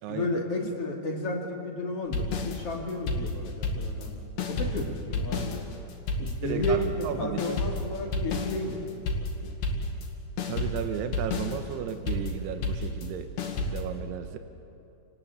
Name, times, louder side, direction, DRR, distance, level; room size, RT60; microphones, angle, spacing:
voice 1, 0.1-5.7 6.2-8.8 9.4-9.6, left 1 dB, 40° left, 1 dB, 2.9 m, -32 dB
sound 1, 2.1-4.1 4.4-10.1 10.4-13.8, left 3 dB, 65° left, 4.1 m, -31 dB
voice 2, 6.2-7.6 10.5-13.3 13.7-14.4, right 9 dB, 75° right, 8 dB, 3.0 m, -34 dB
29.5 x 19.5 x 8.4 m, 2.7 s
omnidirectional pair, 4.9 m